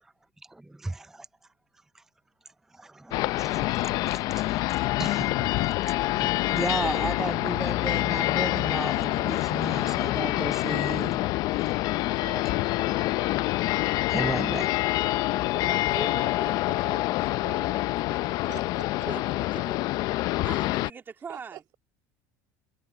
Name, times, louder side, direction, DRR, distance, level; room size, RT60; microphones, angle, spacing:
voice 1, 0.5-1.3 1.9-2.0 2.7-5.5 6.2-11.2 14.1-14.7, right 2 dB, 5° right, 0.4 m, -34 dB
sound 1, 3.1-20.9, left 18 dB, 60° left, 0.5 m, -26 dB
voice 2, 12.2-13.3 16.9-17.0 17.3-18.2 18.5-19.1 21.3-21.8, right 16 dB, 60° right, 6.6 m, -46 dB
voice 3, 15.2-17.0 18.0-18.1 19.1-19.2 19.5-20.0 20.4-21.6, right 6 dB, 30° right, 2.6 m, -41 dB
supercardioid pair, 110°, 7 cm